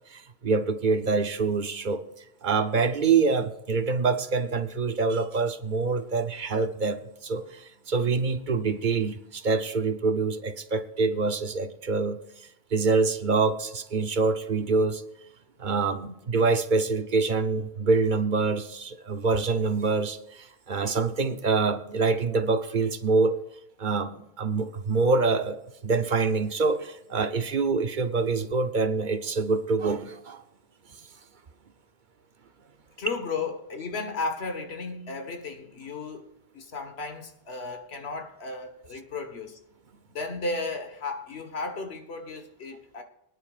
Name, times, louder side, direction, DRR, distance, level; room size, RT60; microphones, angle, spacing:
voice 1, 0.1-2.0 2.4-12.2 12.7-15.0 15.6-23.4 23.8-30.4, right 4 dB, 55° right, 0.8 m, -25 dB
voice 2, 33.0-36.3 36.5-39.6 40.1-43.0, left 3 dB, 85° left, 1.6 m, -34 dB
24.0 x 10.0 x 2.4 m
omnidirectional pair, 1.0 m